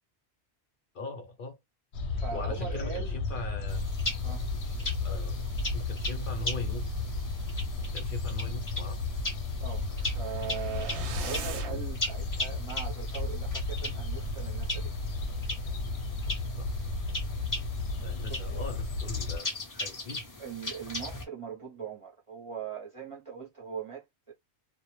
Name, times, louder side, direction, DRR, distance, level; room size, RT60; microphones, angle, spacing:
voice 1, 0.9-1.6 2.3-3.9 4.2-4.3 5.0-5.4 5.7-7.0 7.9-9.0 16.6-16.7 18.0-20.2, left 2 dB, 55° left, 0.7 m, -41 dB
sound 1, 1.9-19.4, left 3 dB, 85° left, 0.9 m, -33 dB
voice 2, 2.1-3.2 4.2-4.5 9.6-9.9 10.1-15.0 18.2-18.6 20.4-24.3, right 7 dB, 35° right, 0.6 m, -40 dB
sound 2, 3.7-21.2, left 2 dB, 30° left, 0.4 m, -39 dB
sound 3, 9.8-11.9, right 5 dB, 90° right, 0.9 m, -41 dB
2.1 x 2.0 x 2.9 m
omnidirectional pair, 1.1 m